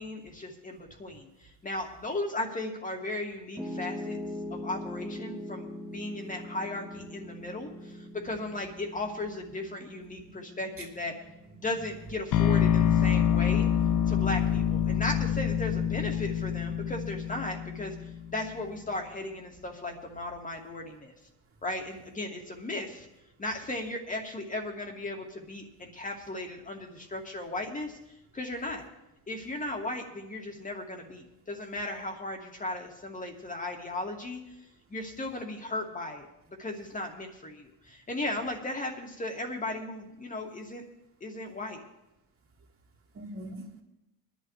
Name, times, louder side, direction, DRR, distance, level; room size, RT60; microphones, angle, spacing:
voice 1, 0.0-4.2 4.5-11.2 11.6-13.7 14.1-21.1 21.6-23.1 23.4-28.0 28.3-28.8 29.3-34.4 34.9-40.8 41.2-41.8, left 2 dB, 15° left, 2.4 m, -36 dB
Piano, 3.6-15.7, left 1 dB, ahead, 1.6 m, -43 dB
voice 2, 11.7-12.1 12.8-13.0 14.3-14.4 15.3-15.4 15.7-16.0 43.1-43.8, right 1 dB, 30° right, 3.2 m, -44 dB
sound 1, 12.3-18.3, left 9 dB, 40° left, 0.9 m, -26 dB
21.5 x 11.5 x 3.3 m
supercardioid pair, 115°, 46 cm